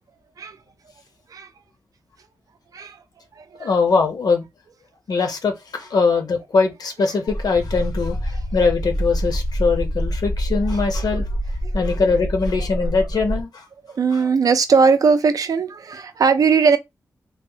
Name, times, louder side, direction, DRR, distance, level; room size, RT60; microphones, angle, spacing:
voice 1, 3.6-4.4 5.1-11.2 11.7-13.6 14.1-14.2, left 4 dB, 90° left, 0.8 m, -21 dB
sound 1, 7.3-13.4, equal, 10° left, 0.4 m, -26 dB
voice 2, 13.9-16.8, right 5 dB, 65° right, 0.5 m, -18 dB
3.3 x 2.1 x 2.7 m
wide cardioid pair, 150°, 7 cm